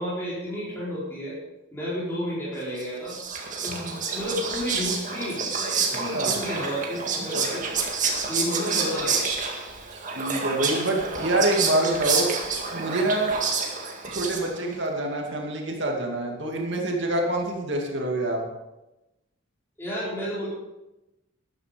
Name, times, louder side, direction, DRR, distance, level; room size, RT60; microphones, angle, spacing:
voice 1, 0.0-1.4 1.7-3.2 3.6-7.6 8.3-9.4 19.8-20.5, equal, 10° left, -8 dB, 4.6 m, -31 dB
Whispering, 2.8-14.7, right 5 dB, 40° right, 2.0 m, -28 dB
voice 2, 5.9-6.4 9.9-12.4 12.7-13.4 14.1-18.5, right 1 dB, 60° right, 0 dB, 2.4 m, -26 dB
13.0 x 11.0 x 5.2 m, 0.96 s
head